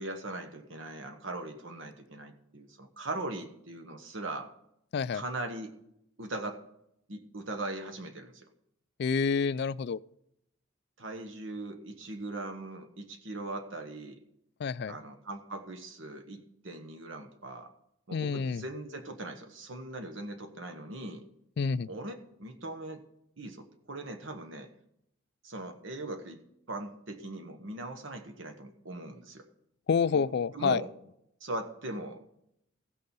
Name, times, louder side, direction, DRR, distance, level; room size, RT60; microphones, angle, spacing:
voice 1, 0.0-4.5 5.1-5.7 6.2-6.6 7.1-8.5 11.0-14.2 14.9-17.7 18.1-21.2 21.9-23.0 23.4-24.7 25.4-26.4 26.7-29.5 30.1-30.3 30.5-30.9 31.4-32.2, right 2 dB, 65° right, 1.1 m, -40 dB
voice 2, 9.0-10.0 14.6-15.0 18.1-18.6 21.6-21.9 29.9-30.8, left 5 dB, 50° left, 0.3 m, -28 dB
15.5 x 6.6 x 5.4 m
head